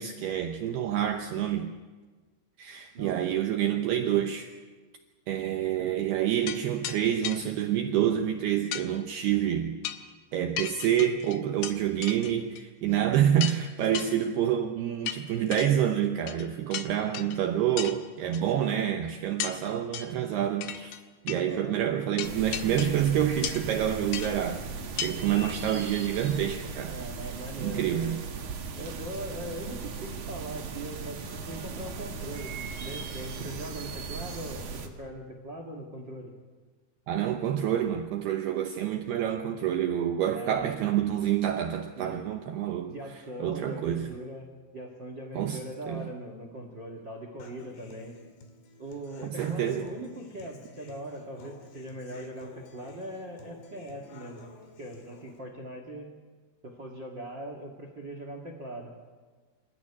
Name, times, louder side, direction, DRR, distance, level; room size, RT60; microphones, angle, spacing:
voice 1, 0.0-1.7 2.6-4.5 5.3-9.8 10.3-21.0 21.2-24.7 24.9-27.0 27.6-28.2 37.1-42.9 43.4-44.1 45.4-46.1 49.2-49.9, right 10 dB, 85° right, 5 dB, 2.3 m, -28 dB
voice 2, 2.9-3.4 5.8-5.9 21.4-21.8 26.9-28.1 28.7-36.3 40.3-40.8 41.9-42.2 42.8-48.1 48.8-54.5 54.8-56.1 56.6-58.9, right 1 dB, 70° right, 4 dB, 1.0 m, -41 dB
sound 1, 6.5-6.6 6.8-7.0 7.2-7.4 8.7-8.9 9.8-10.1 10.6-11.7 12.0-12.6 12.9-13.0 13.4-13.6 13.9-14.1 15.0-15.7 16.3-16.5 16.7-17.4 17.8-17.9 18.3-18.4 19.4-19.6 19.9-20.2 20.6-21.0 21.3-21.4 22.2-23.0 23.4-23.7 24.1-24.3 25.0-25.1 25.5-25.6, left 10 dB, 85° left, 2.1 m, -35 dB
sound 2, 22.2-34.9, right 4 dB, 50° right, 2.5 m, -38 dB
Human voice / Acoustic guitar, 47.4-55.4, left 4 dB, 60° left, 4.4 m, -51 dB
27.0 x 14.0 x 9.8 m, 1.4 s
omnidirectional pair, 6.0 m